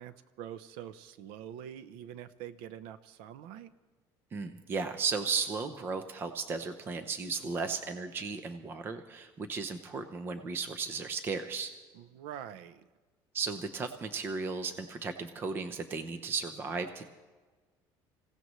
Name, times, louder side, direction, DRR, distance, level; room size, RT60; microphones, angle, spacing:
voice 1, 0.0-3.7 11.9-12.9, right 10 dB, 90° right, 13 dB, 0.7 m, -45 dB
voice 2, 4.3-11.7 13.3-17.1, right 5 dB, 25° right, 9 dB, 0.7 m, -35 dB
26.0 x 16.5 x 3.1 m, 1.3 s
cardioid pair, 165°, 9 cm